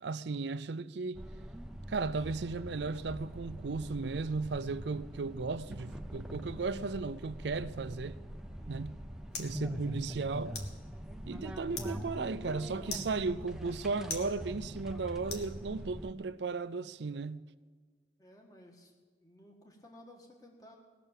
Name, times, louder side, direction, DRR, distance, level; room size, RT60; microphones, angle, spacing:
voice 1, 0.0-1.2 1.9-8.2 8.7-8.9 9.4-10.6 11.3-17.4, right 4 dB, 75° right, 0.5 m, -35 dB
sound 1, 1.1-16.1, equal, 5° right, 0.6 m, -43 dB
sound 2, 8.5-16.1, left 4 dB, 65° left, 1.8 m, -48 dB
voice 2, 8.5-9.0 18.2-18.9 19.2-20.8, left 1 dB, 20° left, 1.5 m, -56 dB
19.0 x 6.8 x 8.9 m
head